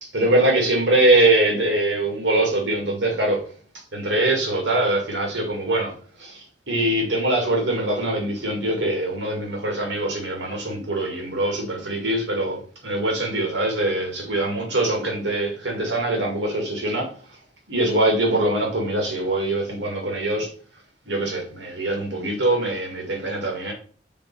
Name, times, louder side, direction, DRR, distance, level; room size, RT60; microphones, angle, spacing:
voice 1, 0.0-3.4 3.9-17.1 17.7-20.5 21.1-23.7, right 1 dB, 75° right, 2.2 m, -23 dB
5.5 x 4.3 x 5.4 m
head